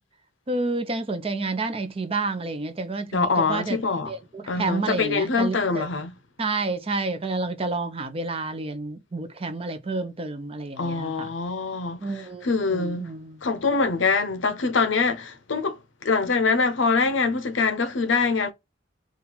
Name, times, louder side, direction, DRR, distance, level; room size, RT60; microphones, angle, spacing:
voice 1, 0.5-3.8 4.1-5.9 6.4-11.3 12.0-13.4, right 3 dB, 30° right, 0.6 m, -29 dB
voice 2, 3.1-4.1 4.5-6.1 10.8-13.1 13.4-18.5, left 4 dB, 75° left, 0.7 m, -24 dB
4.3 x 2.4 x 3.9 m
head